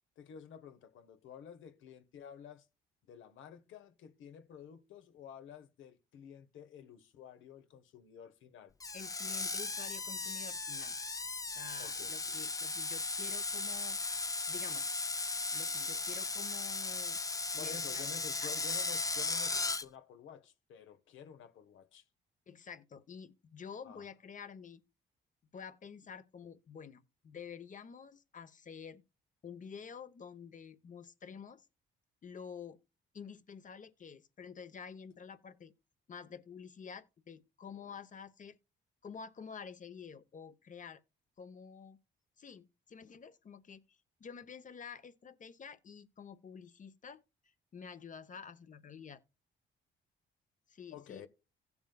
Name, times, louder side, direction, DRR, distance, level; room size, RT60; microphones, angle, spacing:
voice 1, 0.2-2.7 3.1-8.7 11.8-12.5 17.6-22.1 23.8-24.1 50.9-51.3, left 8 dB, 80° left, 1.0 m, -51 dB
Screech, 8.8-19.8, left 3 dB, 15° left, 0.5 m, -36 dB
voice 2, 8.9-11.0 11.6-14.0 14.5-14.9 15.5-17.2 17.5-18.1 18.4-18.5 22.5-24.8 25.5-29.0 29.4-31.7 32.2-32.8 33.1-35.7 36.1-38.6 39.0-41.0 41.4-42.0 42.4-47.2 47.7-49.2 50.7-51.2, left 6 dB, 40° left, 0.9 m, -49 dB
16.0 x 7.1 x 2.3 m
cardioid pair, 90°, 20 cm